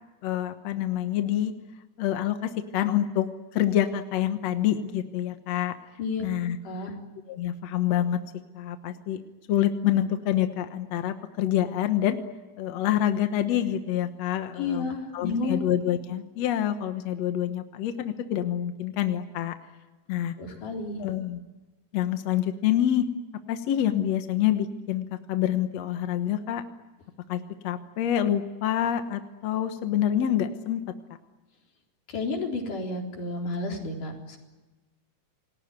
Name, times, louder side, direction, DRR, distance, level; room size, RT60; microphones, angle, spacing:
voice 1, 0.2-1.5 2.0-3.3 3.5-5.7 6.2-6.6 7.3-8.2 8.5-9.2 9.5-12.2 12.6-14.9 15.1-19.6 20.1-20.3 21.0-21.4 21.9-23.1 23.5-26.6 27.3-30.8, left 11 dB, 65° left, 8 dB, 2.2 m, -27 dB
voice 2, 14.6-15.6 20.4-21.0 32.1-34.4, left 3 dB, 85° left, 1 dB, 5.5 m, -31 dB
28.5 x 20.0 x 9.3 m, 1.2 s
omnidirectional pair, 3.6 m